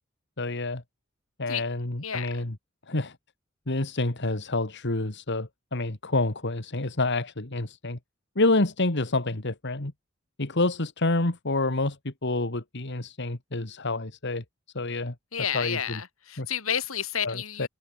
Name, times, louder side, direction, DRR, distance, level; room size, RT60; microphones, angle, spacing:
voice 1, 0.4-0.8 1.4-2.6 2.9-3.2 3.7-8.0 8.4-9.9 10.4-14.4 14.7-16.0 16.4-16.5 17.2-17.7, left 2 dB, 60° left, 2.2 m, -28 dB
voice 2, 15.3-17.7, left 8 dB, 80° left, 4.0 m, -31 dB
head